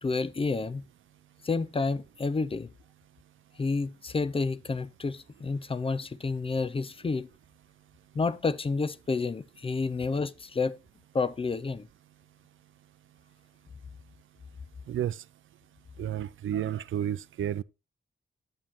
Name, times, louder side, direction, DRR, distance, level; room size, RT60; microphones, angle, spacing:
voice 1, 0.0-0.8 1.4-2.7 3.6-7.3 8.1-10.7 11.1-11.9, left 4 dB, 25° left, 0.4 m, -30 dB
voice 2, 14.9-15.2 16.0-17.6, right 10 dB, 70° right, 0.4 m, -31 dB
8.7 x 7.2 x 3.1 m
cardioid pair, 90°, 21 cm